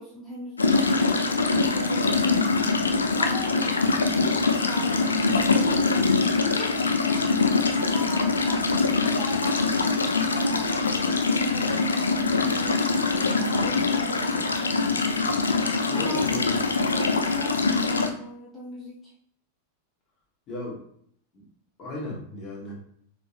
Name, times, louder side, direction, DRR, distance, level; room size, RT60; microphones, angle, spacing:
voice 1, 0.0-2.5 3.2-5.9 6.4-13.1 13.4-15.1 15.6-19.1, left 1 dB, 15° left, -7 dB, 1.1 m, -39 dB
sound 1, 0.6-18.1, left 3 dB, 75° left, 0.4 m, -23 dB
voice 2, 15.9-16.5 20.5-20.8 21.3-21.4 21.8-22.8, left 2 dB, 35° left, -3 dB, 1.3 m, -35 dB
4.4 x 3.3 x 2.5 m, 0.66 s
figure-of-eight pair, 90°, 0 cm